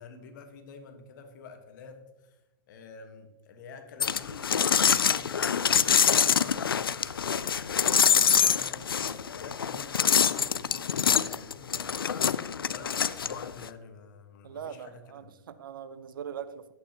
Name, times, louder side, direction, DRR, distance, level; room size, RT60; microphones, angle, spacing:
voice 1, 0.0-2.4 2.7-12.1 12.7-15.3, left 4 dB, 60° left, 6 dB, 1.5 m, -48 dB
sound 1, 4.0-13.7, left 7 dB, 90° left, 0.4 m, -25 dB
voice 2, 14.4-16.7, right 8 dB, 75° right, 13 dB, 0.6 m, -41 dB
11.5 x 9.0 x 3.0 m, 0.99 s
hypercardioid pair, 110°, 12 cm